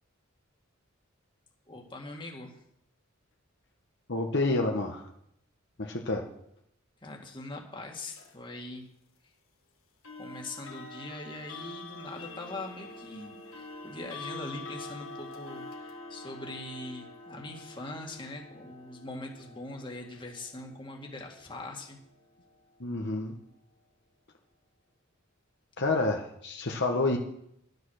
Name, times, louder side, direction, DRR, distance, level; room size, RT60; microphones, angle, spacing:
voice 1, 1.7-2.6 7.0-8.9 10.2-22.0, left 2 dB, 25° left, 1 dB, 2.0 m, -42 dB
voice 2, 4.1-5.0 5.8-6.2 22.8-23.4 25.8-27.2, left 2 dB, 55° left, 1 dB, 1.3 m, -28 dB
sound 1, 8.2-8.4 10.0-22.9, left 3 dB, 75° left, 1.7 m, -46 dB
12.0 x 9.4 x 6.4 m, 0.75 s
head